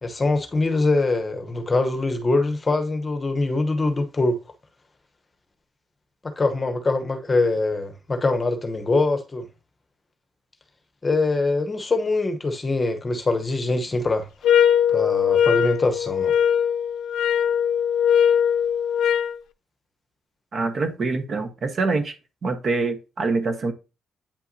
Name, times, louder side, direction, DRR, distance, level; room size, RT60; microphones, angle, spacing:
voice 1, 0.0-4.4 6.2-9.5 11.0-14.3 14.9-16.3, left 3 dB, 25° left, 0.9 m, -23 dB
sound 1, 14.4-19.4, left 8 dB, 80° left, 0.4 m, -20 dB
voice 2, 20.5-22.1 22.4-23.7, right 3 dB, 50° right, 1.1 m, -25 dB
8.6 x 5.5 x 2.7 m
cardioid pair, 110°, 0 cm